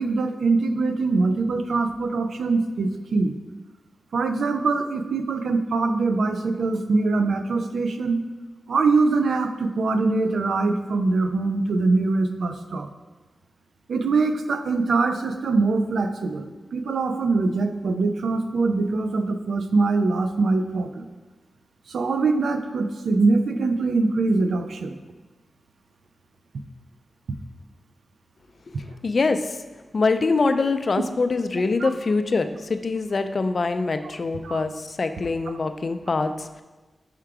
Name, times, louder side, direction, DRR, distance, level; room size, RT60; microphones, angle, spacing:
voice 1, 0.0-3.4 4.1-8.2 8.7-12.9 13.9-21.1 21.9-25.0 31.8-31.9 34.4-34.6, right 3 dB, 90° right, 8 dB, 0.4 m, -23 dB
voice 2, 28.8-29.6 29.9-36.6, left 3 dB, 55° left, 9 dB, 0.4 m, -24 dB
5.7 x 3.7 x 4.7 m, 1.2 s
cardioid pair, 65°, 0 cm